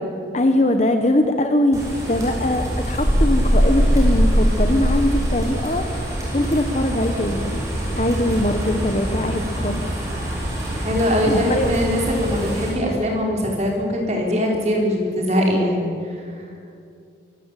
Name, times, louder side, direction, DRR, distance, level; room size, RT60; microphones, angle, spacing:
voice 1, 0.3-7.6 7.9-9.8 10.4-10.5 11.3-11.7, left 1 dB, 35° left, 6 dB, 1.1 m, -22 dB
sound 1, 1.7-12.7, equal, 15° right, 6.0 m, -23 dB
voice 2, 10.8-15.9, equal, 35° right, 0 dB, 4.6 m, -21 dB
24.5 x 15.5 x 8.3 m, 2.4 s
head